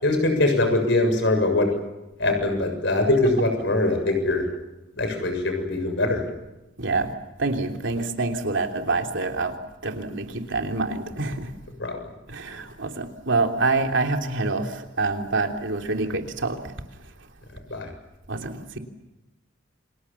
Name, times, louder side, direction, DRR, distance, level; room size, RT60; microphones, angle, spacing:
voice 1, 0.0-1.7 2.2-4.5 5.0-6.2 11.8-12.0 17.7-17.9, left 2 dB, 60° left, 5 dB, 7.0 m, -22 dB
voice 2, 6.8-9.6 9.8-11.5 12.3-16.6 18.3-18.8, right 3 dB, 65° right, 4 dB, 3.2 m, -26 dB
29.0 x 26.5 x 7.2 m, 1.0 s
head